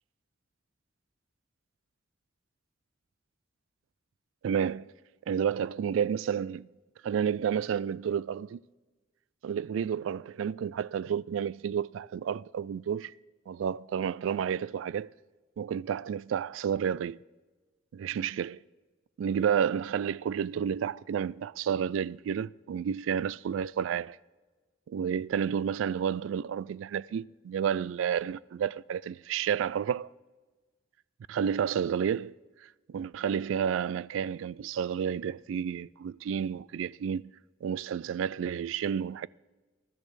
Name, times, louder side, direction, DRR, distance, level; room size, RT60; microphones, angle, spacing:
voice 1, 4.4-4.9 5.3-6.7 7.0-8.6 9.4-13.1 13.5-15.1 15.6-17.2 17.9-18.6 19.2-24.2 24.9-30.1 31.3-32.3 32.9-37.3 37.6-39.3, right 8 dB, 75° right, 0.3 m, -30 dB
20.0 x 12.5 x 3.3 m
head